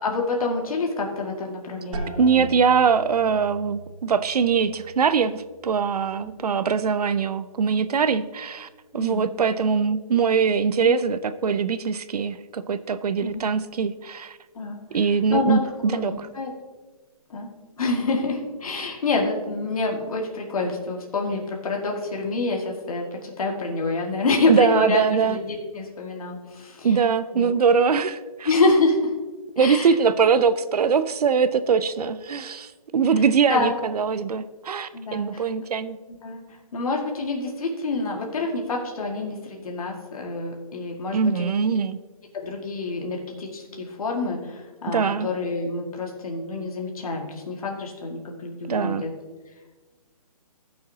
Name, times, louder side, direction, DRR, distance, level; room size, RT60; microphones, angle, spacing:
voice 1, 0.0-2.5 6.2-6.3 8.9-9.2 10.8-11.0 13.2-13.4 14.6-14.8 15.3-16.5 17.3-17.5 17.8-27.0 27.3-27.5 28.5-29.1 29.6-29.9 33.1-33.2 33.5-33.8 34.9-35.4 36.2-36.4 36.7-41.5 42.3-49.1, left 3 dB, 65° left, 0 dB, 1.9 m, -27 dB
sound 1, 1.9-7.6 7.9-8.6 9.1-9.5, right 2 dB, 60° right, 2.3 m, -41 dB
voice 2, 2.2-14.4 14.9-16.3 24.5-25.4 26.8-28.5 29.6-36.0 41.1-42.0 44.9-45.3 48.6-49.0, right 6 dB, 85° right, 13 dB, 0.5 m, -22 dB
17.0 x 6.4 x 2.8 m, 1.3 s
hypercardioid pair, 155°, 19 cm